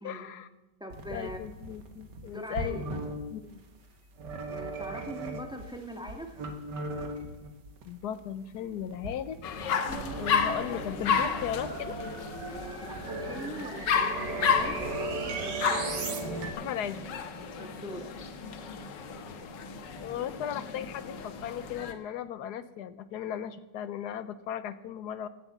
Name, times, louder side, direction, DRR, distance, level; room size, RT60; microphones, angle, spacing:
voice 1, 0.0-0.5 1.1-2.8 3.3-3.6 7.8-9.4 10.2-12.0 16.6-17.0 20.0-25.3, left 9 dB, 70° left, 14 dB, 1.2 m, -36 dB
voice 2, 0.8-1.5 2.3-2.8 4.5-6.4 12.5-15.6 17.5-18.1, equal, 5° right, 3 dB, 1.7 m, -42 dB
sound 1, 0.9-3.2 4.2-5.6 6.0-7.8 8.2-8.3 8.8-10.5 10.9-11.0 11.2-11.3 11.6-11.9 12.8-13.4 13.6-16.5, right 2 dB, 75° right, 2.1 m, -37 dB
sound 2, 9.4-21.9, left 6 dB, 90° left, 1.8 m, -32 dB
sound 3, 9.9-16.2, right 4 dB, 50° right, 1.8 m, -40 dB
16.0 x 7.9 x 7.4 m, 1.0 s
omnidirectional pair, 1.9 m